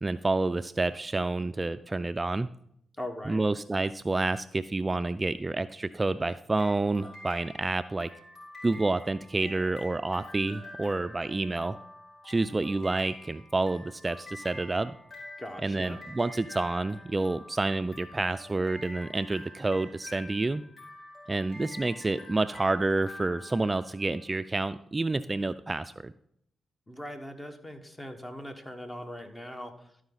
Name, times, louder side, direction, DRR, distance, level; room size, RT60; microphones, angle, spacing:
voice 1, 0.0-2.5 3.3-8.1 8.6-11.8 12.2-15.0 15.6-20.6 21.3-26.1, right 2 dB, 30° right, 13 dB, 0.3 m, -29 dB
voice 2, 3.0-3.4 15.4-16.0 26.9-29.7, left 1 dB, 20° left, 6 dB, 1.4 m, -40 dB
sound 1, 6.5-24.2, left 1 dB, 60° left, 3.8 m, -47 dB
12.5 x 4.9 x 4.0 m, 0.71 s
supercardioid pair, 50°, 0 cm